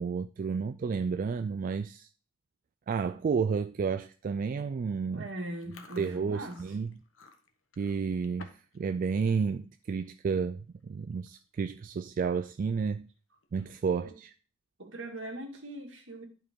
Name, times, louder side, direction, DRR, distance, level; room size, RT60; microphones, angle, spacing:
voice 1, 0.0-2.1 2.9-5.3 6.0-6.9 7.8-13.1 13.5-14.3, right 5 dB, 45° right, 0.3 m, -31 dB
voice 2, 5.1-6.6 14.0-14.1 14.8-16.2, right 1 dB, 75° right, 2.0 m, -40 dB
Chewing mastication, 5.5-8.8 9.1-9.4 9.8-10.1 10.8-10.9 11.1-11.5 11.9-12.0 13.4-14.0, left 4 dB, 85° left, 1.1 m, -54 dB
11.5 x 4.6 x 3.7 m
head